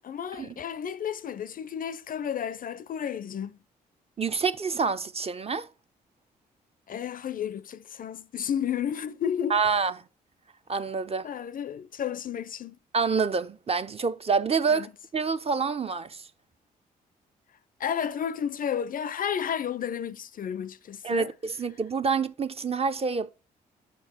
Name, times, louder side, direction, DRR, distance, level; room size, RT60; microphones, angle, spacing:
voice 1, 0.0-3.6 6.9-9.6 11.2-12.8 14.7-14.9 17.8-21.3, left 8 dB, 45° left, 0.5 m, -32 dB
voice 2, 4.2-5.7 9.5-9.9 10.7-11.3 12.9-14.9 15.1-16.3 21.0-23.3, right 5 dB, 30° right, 0.6 m, -27 dB
7.0 x 4.5 x 4.3 m
hypercardioid pair, 45°, 19 cm